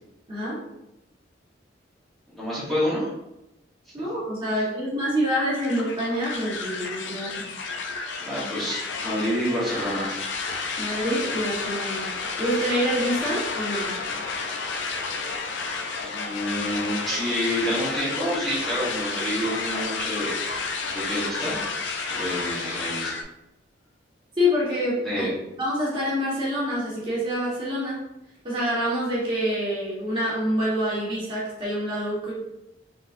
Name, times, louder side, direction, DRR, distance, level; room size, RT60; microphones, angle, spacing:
voice 1, 0.3-0.6 3.9-7.5 10.8-12.1 12.4-13.9 24.4-25.2 25.6-28.0 28.4-32.3, equal, 30° right, -7 dB, 1.4 m, -26 dB
voice 2, 2.3-3.1 4.5-4.6 8.2-10.2 16.0-20.3 20.9-21.6 22.2-23.2 25.0-25.3, equal, ahead, -11 dB, 1.2 m, -28 dB
sound 1, 5.5-23.2, left 4 dB, 85° left, 0.5 m, -31 dB
3.9 x 3.7 x 2.6 m, 0.91 s
head